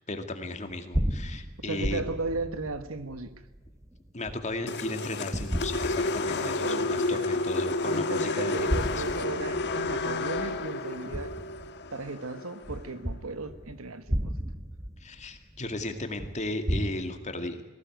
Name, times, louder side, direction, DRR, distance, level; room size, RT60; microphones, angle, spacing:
voice 1, 0.1-2.0 4.1-9.0 15.0-17.6, left 2 dB, 35° left, 2.2 m, -35 dB
sound 1, 0.7-4.8 5.3-6.7 7.1-7.2 8.4-12.1 12.6-16.9, equal, 15° right, 1.1 m, -34 dB
voice 2, 1.6-3.3 6.3-7.4 7.8-11.3 11.9-14.3, right 3 dB, 70° right, 1.5 m, -36 dB
sound 2, 4.7-12.9, left 2 dB, 55° left, 1.4 m, -31 dB
20.5 x 16.5 x 9.3 m
head